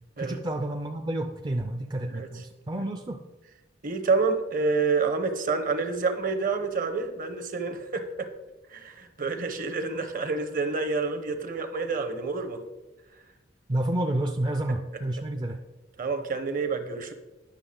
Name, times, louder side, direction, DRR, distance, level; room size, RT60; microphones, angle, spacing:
voice 1, 0.2-3.2 13.7-15.6, right 1 dB, 25° right, 4 dB, 0.4 m, -30 dB
voice 2, 3.8-8.3 8.7-12.6 16.0-17.1, right 4 dB, 45° right, 9 dB, 0.8 m, -28 dB
10.0 x 6.2 x 3.8 m, 1.1 s
head